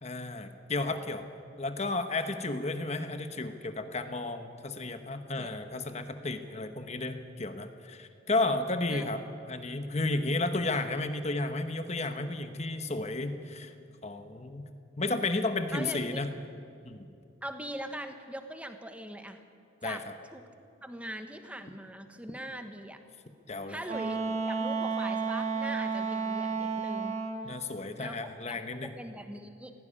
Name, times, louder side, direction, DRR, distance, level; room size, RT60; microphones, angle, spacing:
voice 1, 0.0-1.2 1.6-9.2 9.5-13.7 14.0-14.6 15.0-16.3 16.8-17.1 19.8-20.0 23.5-23.8 27.4-28.9, left 2 dB, 35° left, 8 dB, 1.1 m, -32 dB
voice 2, 15.7-16.2 17.4-19.4 19.8-20.0 20.3-20.4 20.8-23.0 23.7-27.5 28.0-28.2 28.5-29.7, right 1 dB, 5° right, 7 dB, 1.3 m, -41 dB
Wind instrument woodwind instrument, 23.8-27.5, right 4 dB, 35° right, 1.5 m, -31 dB
17.5 x 15.5 x 9.8 m, 2.5 s
head